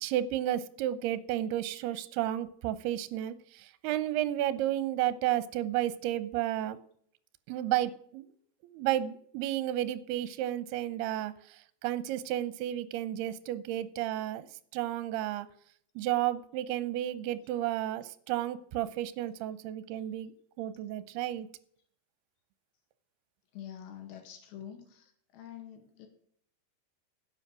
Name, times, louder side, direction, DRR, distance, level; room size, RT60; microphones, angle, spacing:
voice 1, 0.0-6.8 7.5-8.2 8.6-14.5 14.7-15.5 16.0-21.5, right 13 dB, 80° right, 15 dB, 2.7 m, -32 dB
voice 2, 23.5-26.1, left 10 dB, 90° left, 5 dB, 4.0 m, -46 dB
11.5 x 7.9 x 6.1 m, 0.63 s
omnidirectional pair, 4.8 m